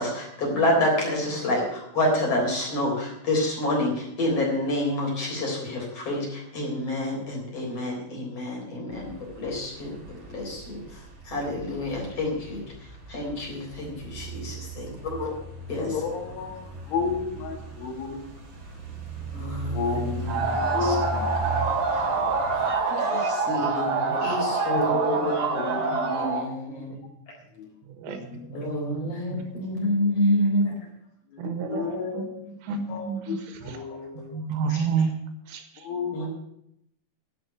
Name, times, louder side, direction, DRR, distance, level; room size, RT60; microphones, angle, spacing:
voice 1, 0.0-12.6 13.1-15.3 15.7-15.9 19.3-20.5 20.8-21.0 22.9-27.0 28.5-30.8 34.7-34.8 36.1-36.3, left 1 dB, 30° left, -1 dB, 4.2 m, -28 dB
sound 1, 8.9-22.8, right 3 dB, 35° right, 2.2 m, -38 dB
voice 2, 15.8-18.3 19.7-21.4 24.1-24.6 25.2-25.3 25.5-26.1 27.6-27.7 28.1-28.6 31.3-32.5 32.9-34.4 35.8-36.3, left 6 dB, 70° left, 2 dB, 4.2 m, -33 dB
sound 2, 20.3-26.5, right 4 dB, 55° right, 2.1 m, -26 dB
voice 3, 24.8-25.3 25.9-26.0 27.9-28.2 28.5-29.5 31.4-33.6 34.2-35.1 35.5-35.8, right 5 dB, 80° right, 8 dB, 3.8 m, -31 dB
11.0 x 7.9 x 9.1 m, 0.75 s
omnidirectional pair, 5.9 m